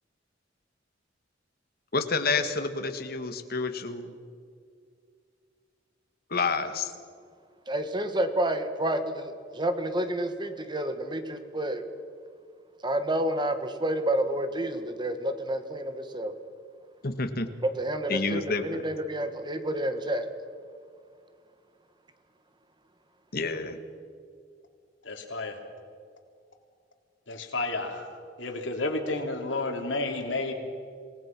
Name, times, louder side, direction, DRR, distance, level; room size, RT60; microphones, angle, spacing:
voice 1, 1.9-4.1 6.3-6.9 17.0-17.5 18.1-18.8 23.3-23.8, left 4 dB, 55° left, 8 dB, 1.7 m, -29 dB
voice 2, 7.7-11.8 12.8-16.3 17.8-20.3, right 1 dB, 25° right, 8 dB, 1.5 m, -29 dB
voice 3, 25.0-25.6 27.3-28.1 28.4-30.5, left 2 dB, 85° left, 3 dB, 3.2 m, -31 dB
27.5 x 18.5 x 6.1 m, 2.2 s
head